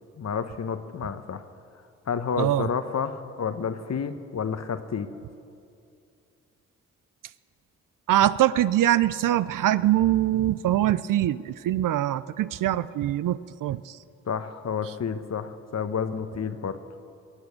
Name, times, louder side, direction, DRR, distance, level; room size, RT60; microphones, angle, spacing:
voice 1, 0.2-1.4 2.1-5.1 14.3-16.8, left 6 dB, 45° left, 11 dB, 1.0 m, -30 dB
voice 2, 2.4-2.7 8.1-14.0, right 13 dB, 55° right, 17 dB, 0.5 m, -23 dB
21.0 x 8.0 x 7.1 m, 2.5 s
hypercardioid pair, 40°, 38 cm